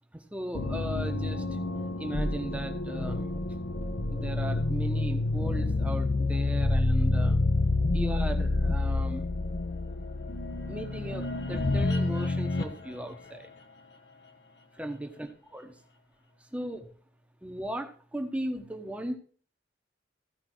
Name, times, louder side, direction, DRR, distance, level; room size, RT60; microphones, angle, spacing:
voice 1, 0.1-1.4 2.0-3.3 4.1-7.4 7.9-9.3 10.7-13.5 14.8-15.7 16.5-16.9 17.4-19.2, right 1 dB, 10° right, 5 dB, 1.1 m, -37 dB
sound 1, 0.5-12.8, left 2 dB, 70° left, 1.0 m, -28 dB
15.0 x 5.2 x 4.6 m, 0.44 s
head